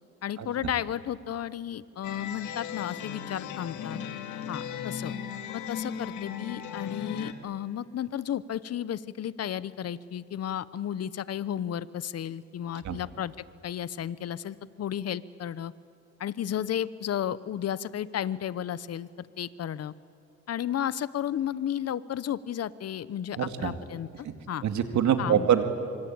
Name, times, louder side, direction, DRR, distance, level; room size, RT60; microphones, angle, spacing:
voice 1, 0.2-4.0 4.5-5.1 5.5-15.7 16.2-19.9 20.5-24.6 25.2-25.5, left 10 dB, 55° left, 17 dB, 0.9 m, -33 dB
sound 1, 2.0-7.3, left 8 dB, 75° left, 2.0 m, -37 dB
voice 2, 23.4-23.8 24.6-25.6, right 9 dB, 70° right, 7 dB, 2.3 m, -24 dB
25.0 x 25.0 x 8.8 m, 2.5 s
cardioid pair, 90°, 30 cm